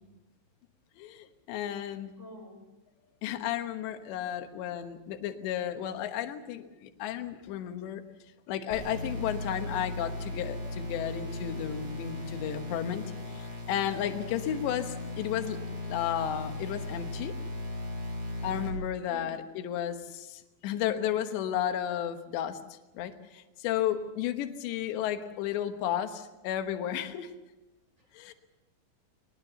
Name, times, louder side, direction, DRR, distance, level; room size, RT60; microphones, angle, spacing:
voice 1, 1.0-2.1 3.2-8.0 8.5-13.0 13.3-15.6 15.9-17.3 18.4-22.6 22.9-27.3 28.1-28.3, left 10 dB, 80° left, 7 dB, 3.4 m, -33 dB
voice 2, 1.7-2.6 19.1-19.4 28.0-28.3, left 1 dB, 15° right, 3 dB, 5.1 m, -50 dB
sound 1, 8.7-18.7, left 2 dB, 80° right, 8.6 m, -37 dB
23.0 x 20.0 x 7.0 m, 1.0 s
omnidirectional pair, 5.1 m